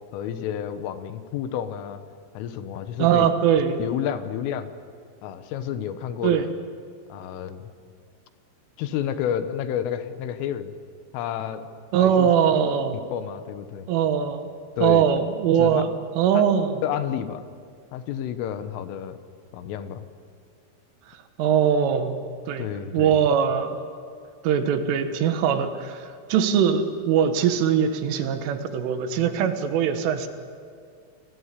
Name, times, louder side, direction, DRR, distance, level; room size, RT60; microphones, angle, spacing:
voice 1, 0.1-2.0 2.4-3.3 3.8-4.7 5.2-6.5 7.1-7.7 8.8-10.7 11.1-11.7 12.0-12.3 13.1-13.9 14.8-15.1 15.6-15.8 16.8-17.4 17.9-19.2 19.5-20.0 22.6-23.2, left 9 dB, 85° left, 10 dB, 3.8 m, -30 dB
voice 2, 3.0-3.8 6.2-6.5 11.9-13.0 13.9-14.5 14.8-16.8 21.4-22.2 22.5-23.8 24.4-30.3, right 8 dB, 80° right, 8 dB, 4.0 m, -21 dB
29.5 x 21.5 x 8.4 m, 2.2 s
omnidirectional pair, 5.7 m